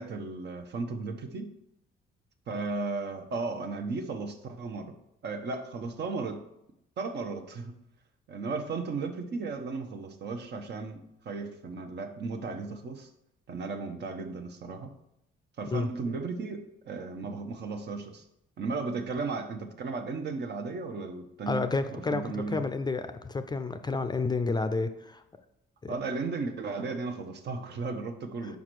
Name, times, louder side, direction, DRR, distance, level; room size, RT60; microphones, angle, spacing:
voice 1, 0.0-1.5 2.5-5.0 5.2-6.4 7.0-7.8 8.3-13.1 13.5-14.9 15.6-18.2 18.6-21.7 21.9-22.6 25.9-28.6, right 4 dB, 60° right, 6 dB, 0.9 m, -35 dB
voice 2, 21.5-25.2 25.8-25.9, left 3 dB, 20° left, 9 dB, 0.4 m, -30 dB
5.2 x 4.8 x 6.0 m, 0.83 s
cardioid pair, 90°, 20 cm